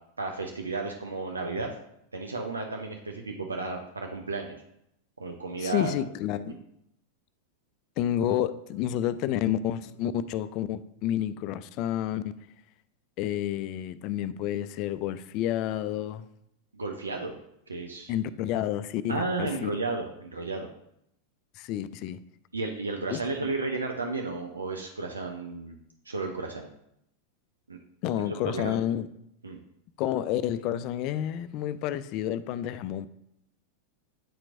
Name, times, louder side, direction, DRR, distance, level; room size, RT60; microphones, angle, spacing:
voice 1, 0.2-1.7 2.1-4.6 5.2-5.9 6.5-6.6 16.7-17.4 17.7-18.1 19.1-20.7 22.5-25.8 26.1-26.7 27.7-27.8 28.2-28.8 29.4-29.6, right 3 dB, 75° right, 0.6 m, -33 dB
voice 2, 5.6-6.5 8.0-12.3 13.2-16.2 18.1-19.7 21.6-22.2 23.1-23.5 28.0-29.1 30.0-33.1, left 11 dB, 40° left, 0.3 m, -30 dB
9.1 x 4.4 x 2.5 m
figure-of-eight pair, 90°, 0 cm